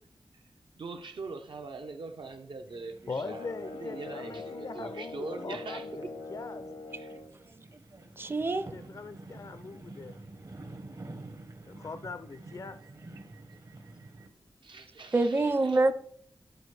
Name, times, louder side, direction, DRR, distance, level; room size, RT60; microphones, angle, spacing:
voice 1, 0.8-6.1 6.9-7.2 14.6-15.9, right 4 dB, 75° right, 0.8 m, -42 dB
sound 1, 2.7-14.3, right 2 dB, 45° right, 0.9 m, -49 dB
sound 2, 3.1-7.4, left 2 dB, 85° left, 0.8 m, -42 dB
voice 2, 3.1-6.6 8.6-10.2 11.6-12.8, left 4 dB, 45° left, 0.4 m, -41 dB
voice 3, 8.2-8.7 15.1-15.9, right 2 dB, 25° right, 0.5 m, -25 dB
10.5 x 4.2 x 3.3 m
wide cardioid pair, 90°, 8 cm